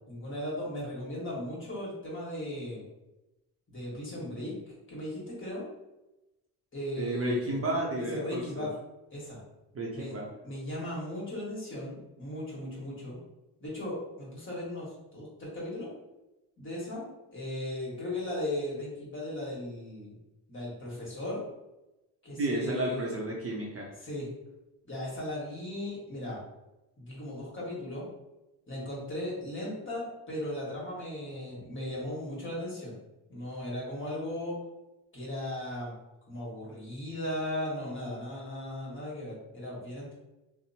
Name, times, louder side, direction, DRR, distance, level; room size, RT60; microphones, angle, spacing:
voice 1, 0.1-2.8 3.7-4.5 4.9-5.6 6.7-7.6 8.0-8.7 9.1-9.4 9.9-10.1 10.4-13.2 13.6-15.9 16.6-20.2 20.5-21.4 22.2-23.1 24.0-24.3 24.8-26.4 27.0-28.0 28.7-33.0 33.3-34.6 35.1-35.9 36.3-40.1, left 1 dB, 30° left, -5 dB, 1.4 m, -37 dB
voice 2, 7.0-8.7 9.7-10.3 22.4-23.9, right 1 dB, 35° right, -2 dB, 0.6 m, -32 dB
2.7 x 2.0 x 2.7 m, 0.99 s
supercardioid pair, 75°, 39 cm